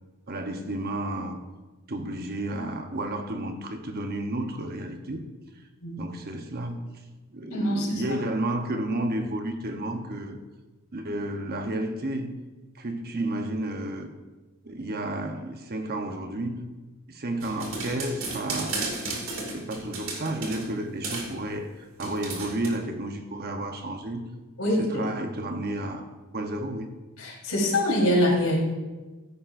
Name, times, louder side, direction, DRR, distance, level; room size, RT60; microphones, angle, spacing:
voice 1, 0.3-1.4 1.9-5.2 6.0-6.9 7.3-10.4 10.9-12.3 12.7-14.1 14.6-16.7 17.1-18.9 19.5-24.2 24.8-26.1 26.3-26.9, right 1 dB, 45° right, 0.9 m, -31 dB
voice 2, 7.5-8.0 24.6-25.0 27.2-28.6, left 1 dB, 75° left, 4.0 m, -24 dB
sound 1, 17.4-20.7 21.0-21.3 22.0-22.7, right 3 dB, 65° right, 2.3 m, -33 dB
15.0 x 10.0 x 2.6 m
head